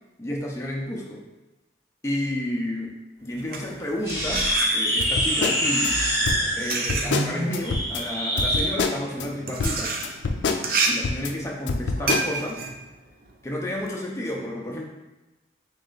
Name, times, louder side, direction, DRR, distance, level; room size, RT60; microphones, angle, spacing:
voice 1, 0.2-1.2 2.0-6.0 6.6-9.9 10.9-12.7 13.4-14.8, left 1 dB, 15° left, -2 dB, 0.5 m, -31 dB
sound 1, 3.3-5.2 6.0-13.9, right 4 dB, 55° right, 0.4 m, -30 dB
sound 2, 4.0-8.7, equal, 15° right, 0.9 m, -25 dB
sound 3, 5.0-5.9 6.2-8.0 8.4-9.3 9.6-11.3 11.7-12.3, left 4 dB, 85° left, 0.4 m, -27 dB
3.1 x 3.0 x 3.8 m, 1.1 s
head